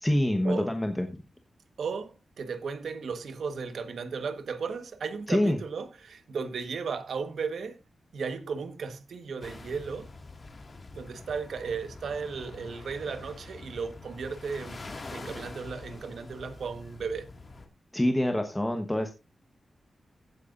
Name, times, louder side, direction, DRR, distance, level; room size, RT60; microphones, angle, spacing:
voice 1, 0.0-1.1 5.3-5.6 17.9-19.1, left 1 dB, 10° left, 1.2 m, -26 dB
voice 2, 1.8-7.8 8.1-10.1 10.9-14.8 15.1-17.3, right 5 dB, 75° right, 1.4 m, -35 dB
sound 1, 9.4-17.7, left 3 dB, 35° left, 2.1 m, -45 dB
16.0 x 9.3 x 2.6 m
wide cardioid pair, 155°, 0 cm